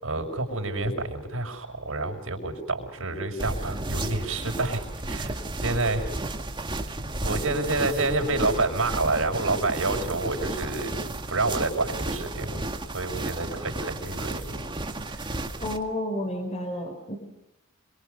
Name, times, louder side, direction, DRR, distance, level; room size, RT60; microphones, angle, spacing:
voice 1, 0.0-6.1 6.7-6.9 7.2-10.9 11.3-12.7 12.9-14.7 15.1-15.4, right 2 dB, 70° right, 3 dB, 5.7 m, -28 dB
sound 1, 3.4-15.8, right 2 dB, 25° right, 2.1 m, -33 dB
voice 2, 15.6-17.2, left 1 dB, 30° left, 4 dB, 4.4 m, -31 dB
27.0 x 23.5 x 6.7 m, 0.90 s
head